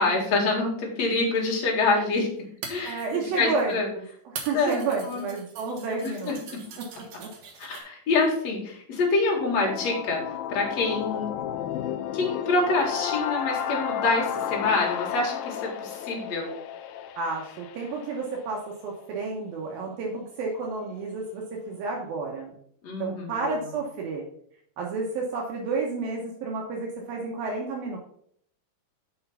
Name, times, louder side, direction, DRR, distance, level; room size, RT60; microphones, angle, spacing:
voice 1, 0.0-2.3 2.7-3.0 3.4-3.9 4.5-5.2 6.0-6.4 7.6-11.3 12.1-16.5 22.8-23.7, left 3 dB, 50° left, -1 dB, 2.9 m, -26 dB
sound 1, 1.4-1.5 2.4-3.7 4.4-7.8, right 5 dB, 60° right, 1.8 m, -42 dB
voice 2, 2.8-6.6 7.2-7.3 17.2-22.6 23.0-24.3 24.8-28.0, right 4 dB, 75° right, -1 dB, 2.8 m, -31 dB
sound 2, 9.2-19.1, left 9 dB, 85° left, 2.3 m, -32 dB
6.4 x 5.8 x 5.5 m, 0.64 s
omnidirectional pair, 4.3 m